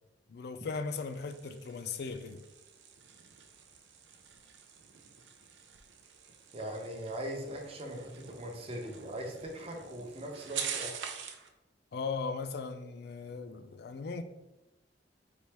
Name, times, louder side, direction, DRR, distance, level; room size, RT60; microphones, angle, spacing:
voice 1, 0.3-2.4 11.9-14.2, left 4 dB, 60° left, 0.4 m, -38 dB
sound 1, 0.8-11.5, right 7 dB, 80° right, 0.5 m, -45 dB
voice 2, 6.5-11.1, right 1 dB, 30° right, 0.7 m, -40 dB
4.3 x 3.4 x 2.9 m
head